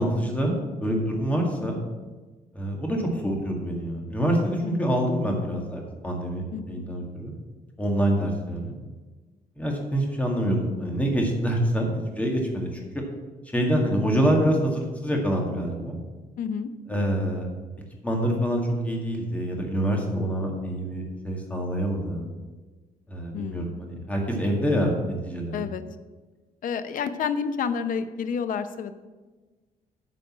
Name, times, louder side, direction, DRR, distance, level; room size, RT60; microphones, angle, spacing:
voice 1, 0.0-1.8 2.5-7.3 7.8-8.8 9.6-12.7 12.9-13.0 13.5-16.0 16.9-17.5 18.0-22.3 23.1-25.6, equal, 10° left, 0 dB, 1.9 m, -26 dB
voice 2, 4.6-4.9 6.5-6.8 16.4-16.7 23.3-23.7 25.5-25.8 26.6-28.9, left 6 dB, 65° left, 11 dB, 0.7 m, -29 dB
9.2 x 5.3 x 7.4 m, 1.3 s
cardioid pair, 140°, 15 cm